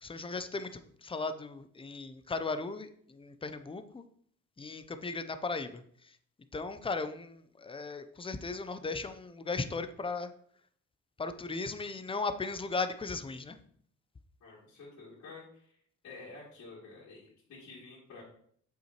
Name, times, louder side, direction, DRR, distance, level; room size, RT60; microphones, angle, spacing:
voice 1, 0.0-4.0 4.6-6.2 6.5-10.3 11.2-13.6, left 3 dB, 20° left, 10 dB, 0.6 m, -37 dB
voice 2, 14.4-15.8 16.0-18.2, left 3 dB, 65° left, -7 dB, 2.8 m, -50 dB
7.3 x 5.8 x 3.0 m, 0.62 s
cardioid pair, 90°, 30 cm